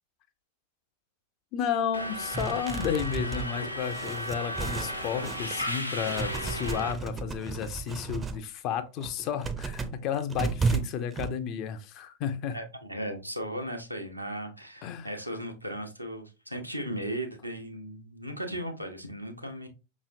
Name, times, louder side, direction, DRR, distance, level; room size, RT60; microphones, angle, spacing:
voice 1, 1.5-12.6 14.8-15.1, left 8 dB, 40° left, 9 dB, 0.6 m, -32 dB
Subway metro underground, 1.9-6.9, equal, 90° left, 0.7 m, -35 dB
sound 1, 2.3-5.7 6.0-8.4 8.9-11.3, right 4 dB, 15° right, 0.5 m, -33 dB
voice 2, 12.5-19.7, right 1 dB, 90° right, 3 dB, 0.8 m, -36 dB
5.4 x 3.0 x 2.6 m, 0.29 s
figure-of-eight pair, 90°, 0 cm